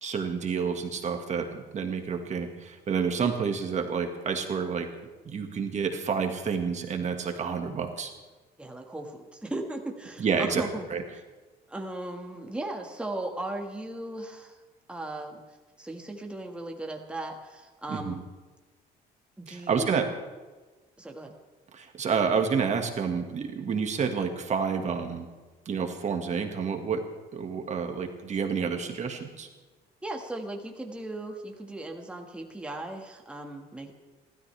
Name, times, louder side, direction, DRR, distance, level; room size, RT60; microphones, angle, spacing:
voice 1, 0.0-4.9 5.3-8.1 10.2-11.0 17.9-18.1 19.5-20.0 21.7-25.3 25.7-27.0 27.3-29.5, right 6 dB, 45° right, 4 dB, 1.9 m, -29 dB
voice 2, 8.6-10.9 11.7-14.6 14.9-15.4 15.8-18.2 19.4-20.0 21.0-21.3 30.0-33.9, right 2 dB, 5° right, 2 dB, 1.8 m, -37 dB
29.5 x 13.0 x 3.4 m, 1.3 s
cardioid pair, 110°, 17 cm